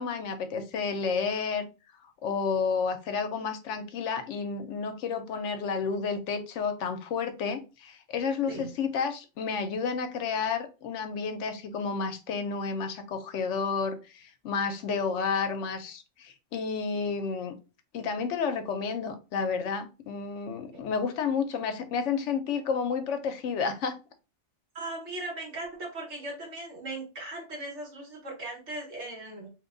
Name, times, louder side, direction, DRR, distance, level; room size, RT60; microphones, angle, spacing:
voice 1, 0.0-1.7 2.2-17.5 17.9-24.0, left 5 dB, 80° left, 8 dB, 0.9 m, -31 dB
voice 2, 24.7-29.5, right 2 dB, 70° right, -1 dB, 1.6 m, -38 dB
3.1 x 2.2 x 3.6 m, 0.31 s
omnidirectional pair, 1.2 m